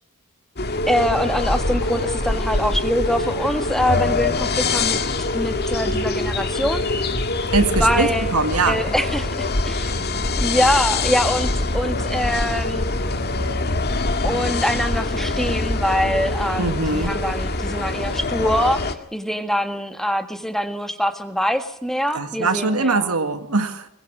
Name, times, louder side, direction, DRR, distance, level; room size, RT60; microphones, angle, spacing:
sound 1, 0.6-18.9, left 2 dB, 50° left, 2.0 m, -24 dB
voice 1, 0.9-6.8 7.7-8.3 8.7-9.9 10.4-12.9 14.2-23.1, equal, ahead, 8 dB, 1.6 m, -24 dB
voice 2, 7.5-8.8 16.6-17.1 22.1-23.9, right 3 dB, 85° right, 9 dB, 1.9 m, -22 dB
21.5 x 21.0 x 6.2 m, 0.81 s
head